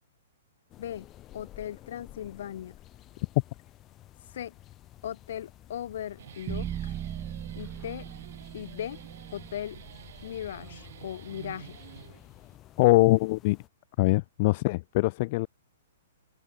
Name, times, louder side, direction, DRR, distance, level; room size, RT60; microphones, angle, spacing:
sound 1, 0.7-13.7, left 14 dB, 25° left, 2.7 m, -52 dB
voice 1, 1.3-2.8 4.3-4.5 5.0-6.9 7.6-8.1 8.5-9.0 9.3-9.8 10.2-11.8, left 10 dB, 65° left, 1.1 m, -38 dB
Guitar, 6.0-12.6, right 10 dB, 65° right, 2.4 m, -49 dB
sound 2, 6.5-10.7, right 10 dB, 20° right, 1.2 m, -39 dB
voice 2, 12.8-13.6 14.0-15.5, left 22 dB, 45° left, 0.4 m, -22 dB
hypercardioid pair, 145°, 0 cm